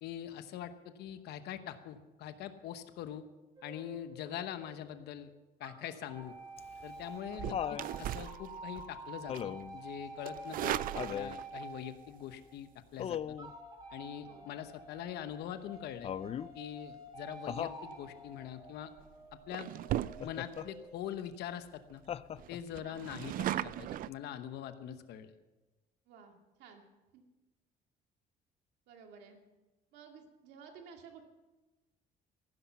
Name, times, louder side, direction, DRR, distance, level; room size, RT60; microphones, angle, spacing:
voice 1, 0.0-3.2 3.6-5.3 5.6-6.3 6.8-10.8 11.1-13.4 13.9-16.1 16.5-18.9 19.5-19.7 20.2-22.0 22.5-25.3, left 10 dB, 75° left, 10 dB, 1.0 m, -43 dB
sound 1, 3.6-5.1 5.6-12.7 13.4-20.9, right 2 dB, 25° right, 2.8 m, -49 dB
Laughter, 6.6-7.9 9.3-9.8 10.9-11.4 13.0-13.5 16.0-16.5 17.5-17.8 20.2-20.7 22.1-22.7 24.1-24.2, left 9 dB, 35° left, 0.4 m, -38 dB
sound 2, 7.3-9.0 9.3-9.6 10.2-11.6 12.9-13.2 18.2-18.5 19.0-19.1 19.5-20.6 21.1-21.2 21.5-21.6 21.9-22.0 22.4-24.1, right 13 dB, 55° right, 0.4 m, -38 dB
voice 2, 26.1-26.8 27.1-27.2 28.9-29.4 29.9-31.2, right 6 dB, 85° right, 3 dB, 2.3 m, -54 dB
15.0 x 11.5 x 5.8 m, 1.1 s
cardioid pair, 110°, 17 cm